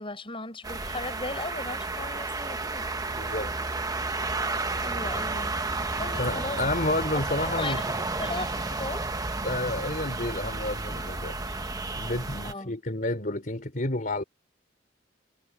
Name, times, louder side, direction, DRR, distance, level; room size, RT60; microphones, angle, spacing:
voice 1, 0.0-2.9 4.8-6.6 7.2-9.1 12.4-12.8, left 2 dB, 30° left, 7.1 m, -37 dB
sound 1, 0.6-12.5, right 3 dB, 20° right, 1.1 m, -32 dB
voice 2, 3.2-3.5 6.2-7.8 9.4-11.4 12.0-14.2, left 2 dB, 45° left, 3.9 m, -30 dB
head